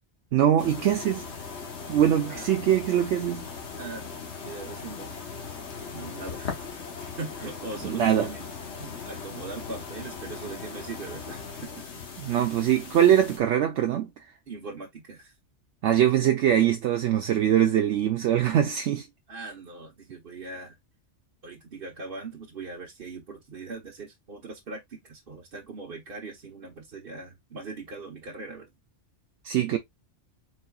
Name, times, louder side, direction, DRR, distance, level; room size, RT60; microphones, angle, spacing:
voice 1, 0.3-1.3 1.9-3.5 7.8-8.3 12.2-14.1 15.8-19.0 29.4-29.8, right 10 dB, 70° right, 0.9 m, -22 dB
sound 1, 0.6-13.4, left 5 dB, 60° left, 1.3 m, -39 dB
voice 2, 3.8-4.1 4.4-5.2 5.9-6.7 7.2-8.5 8.8-12.0 14.5-15.3 19.3-20.8 21.4-28.7, right 3 dB, 50° right, 1.1 m, -40 dB
4.3 x 4.1 x 2.3 m
omnidirectional pair, 1.3 m